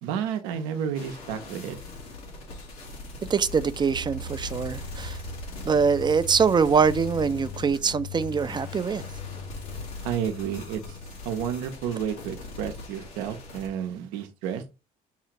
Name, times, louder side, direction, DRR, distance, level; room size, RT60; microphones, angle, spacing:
voice 1, 0.0-1.8 10.0-11.0 11.2-14.6, right 8 dB, 80° right, 0.7 m, -31 dB
sound 1, 0.9-13.7, left 2 dB, 85° left, 1.5 m, -41 dB
voice 2, 3.3-5.2 5.6-9.0, right 6 dB, 25° right, 0.4 m, -23 dB
sound 2, 3.9-11.7, left 4 dB, 60° left, 0.6 m, -40 dB
5.6 x 2.4 x 2.9 m
hypercardioid pair, 65°, 19 cm